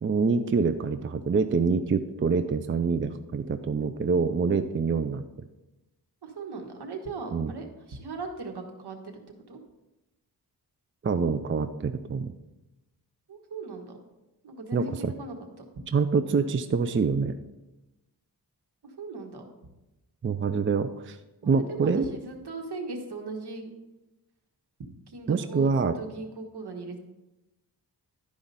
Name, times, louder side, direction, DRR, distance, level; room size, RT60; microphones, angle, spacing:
voice 1, 0.0-5.2 7.3-7.5 11.0-12.3 14.7-15.1 15.9-17.3 20.2-21.2 21.4-22.1 25.3-26.0, right 5 dB, 30° right, 10 dB, 0.4 m, -26 dB
voice 2, 6.2-9.2 9.5-9.6 13.3-14.0 14.4-15.6 18.8-19.5 21.4-23.7 25.1-27.0, right 3 dB, 75° right, 3 dB, 1.4 m, -38 dB
11.5 x 4.9 x 4.1 m, 0.99 s
wide cardioid pair, 70°, 40 cm